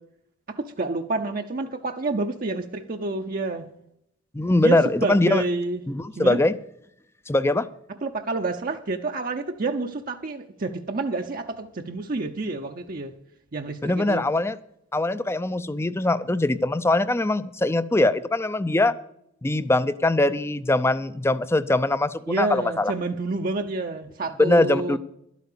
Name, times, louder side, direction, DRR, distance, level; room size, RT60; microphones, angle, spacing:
voice 1, 0.5-3.7 4.6-5.8 6.2-6.4 8.0-13.1 13.5-14.3 22.3-25.0, right 3 dB, 50° right, 4 dB, 0.7 m, -28 dB
voice 2, 4.3-5.4 5.9-6.5 7.3-7.6 13.8-14.6 14.9-18.9 19.4-22.9 24.4-25.0, left 2 dB, 15° left, 15 dB, 0.5 m, -22 dB
12.0 x 8.3 x 6.8 m, 0.76 s
head